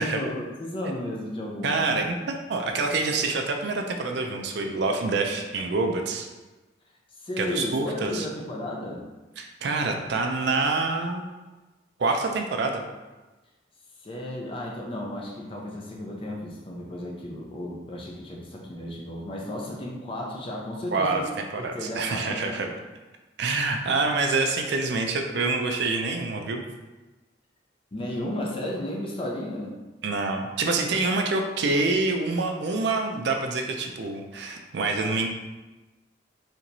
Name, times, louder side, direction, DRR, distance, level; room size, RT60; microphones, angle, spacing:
voice 1, 0.0-2.0 2.5-2.6 7.2-9.0 14.0-21.3 21.6-22.7 27.9-29.8, left 1 dB, 30° left, -1 dB, 0.6 m, -34 dB
voice 2, 1.6-2.1 2.5-6.3 7.4-8.3 9.4-11.2 12.0-12.8 20.9-21.2 21.5-22.7 23.4-26.6 30.0-35.3, right 3 dB, 60° right, 3 dB, 0.4 m, -26 dB
4.4 x 2.9 x 2.6 m, 1.1 s
head